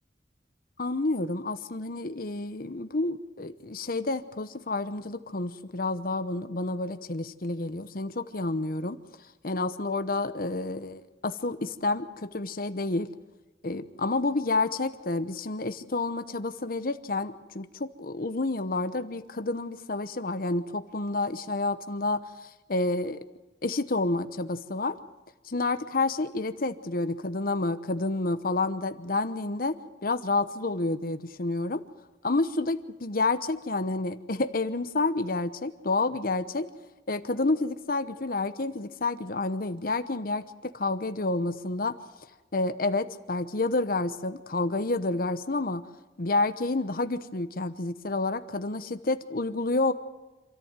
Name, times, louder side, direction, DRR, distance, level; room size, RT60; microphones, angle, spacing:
voice 1, 0.8-9.0 9.4-13.1 13.6-22.2 22.7-23.2 23.6-25.0 25.5-31.8 32.2-36.7 37.1-41.9 42.5-45.8 46.2-49.9, left 2 dB, 55° left, 11 dB, 1.0 m, -29 dB
27.0 x 14.0 x 9.0 m, 1.2 s
head